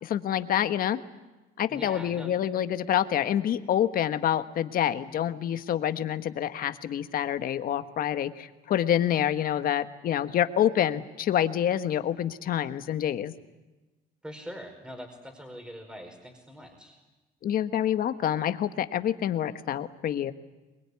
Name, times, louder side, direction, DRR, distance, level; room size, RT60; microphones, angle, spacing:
voice 1, 0.0-1.0 1.6-13.3 17.4-20.3, left 10 dB, 60° left, 10 dB, 1.4 m, -27 dB
voice 2, 1.7-2.3 14.2-17.0, equal, 5° right, 4 dB, 5.0 m, -43 dB
23.5 x 21.5 x 9.8 m, 1.1 s
cardioid pair, 110°, 17 cm